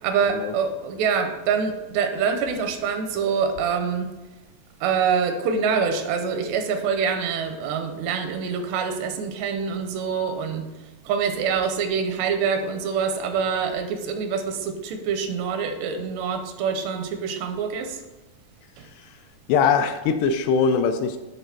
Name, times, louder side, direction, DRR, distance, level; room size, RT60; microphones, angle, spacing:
voice 1, 0.0-4.1 4.8-10.7 11.0-18.0 18.8-18.9, right 6 dB, 80° right, 6 dB, 2.8 m, -25 dB
voice 2, 19.5-21.2, left 6 dB, 80° left, 7 dB, 2.5 m, -21 dB
10.5 x 3.8 x 5.8 m, 1.1 s
omnidirectional pair, 5.0 m